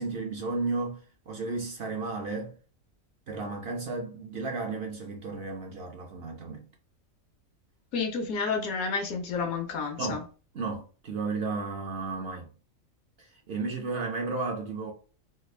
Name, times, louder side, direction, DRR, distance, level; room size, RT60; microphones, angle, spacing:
voice 1, 0.0-2.6 3.3-6.7 10.0-10.2 10.5-12.5 13.2-14.9, right 3 dB, 60° right, 0.7 m, -33 dB
voice 2, 7.9-10.2, left 5 dB, 85° left, 1.2 m, -30 dB
3.4 x 2.4 x 3.2 m
omnidirectional pair, 1.4 m